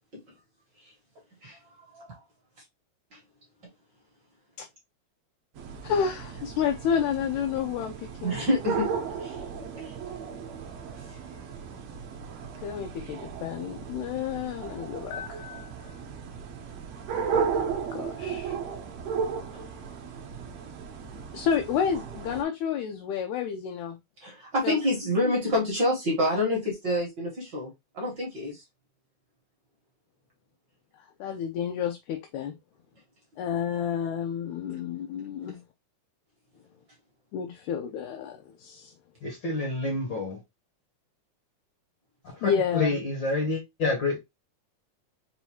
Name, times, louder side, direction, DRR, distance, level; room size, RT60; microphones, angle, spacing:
dog barking at night, 5.6-22.4, right 6 dB, 70° right, 1.7 m, -35 dB
voice 1, 5.8-8.4 12.6-16.0 17.9-18.6 21.3-24.0 24.6-24.8 31.2-32.5 33.4-35.6 37.3-38.9 42.4-43.0, left 7 dB, 80° left, 1.8 m, -30 dB
voice 2, 8.2-8.9 9.2-9.4 9.7-9.9 24.2-28.6, left 1 dB, 55° right, 1.3 m, -27 dB
voice 3, 39.2-40.4 42.3-44.2, left 3 dB, 60° left, 1.3 m, -28 dB
5.6 x 2.6 x 2.9 m
omnidirectional pair, 3.6 m